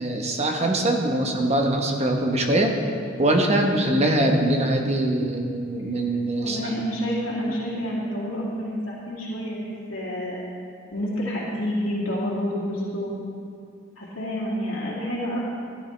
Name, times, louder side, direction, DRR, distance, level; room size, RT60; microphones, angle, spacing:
voice 1, 0.0-2.7 3.2-6.6 7.5-7.6, right 1 dB, 30° right, 2 dB, 1.1 m, -22 dB
voice 2, 6.4-10.4 10.9-13.1 14.0-15.4, equal, 75° left, -7 dB, 2.3 m, -29 dB
14.0 x 11.5 x 3.3 m, 2.4 s
head